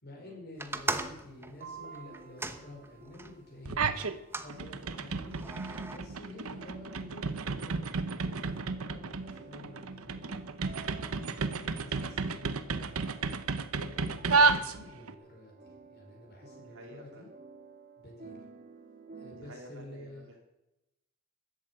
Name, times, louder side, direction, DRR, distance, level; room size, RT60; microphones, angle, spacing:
voice 1, 0.0-3.9 4.4-5.5 5.9-10.3 10.9-13.2 13.7-17.3 18.0-18.5 19.2-20.4, left 2 dB, 50° left, 0 dB, 5.1 m, -50 dB
sound 1, 0.6-3.4 4.0-4.5 5.3-6.0, right 2 dB, 10° right, 0.8 m, -38 dB
sound 2, 1.4-19.5, right 4 dB, 40° right, 2.2 m, -53 dB
sound 3, 3.7-4.2 4.5-15.1, right 4 dB, 80° right, 0.9 m, -32 dB
voice 2, 16.7-17.2 19.4-20.4, right 1 dB, 65° right, 1 dB, 3.3 m, -51 dB
13.5 x 8.3 x 9.0 m, 0.93 s
head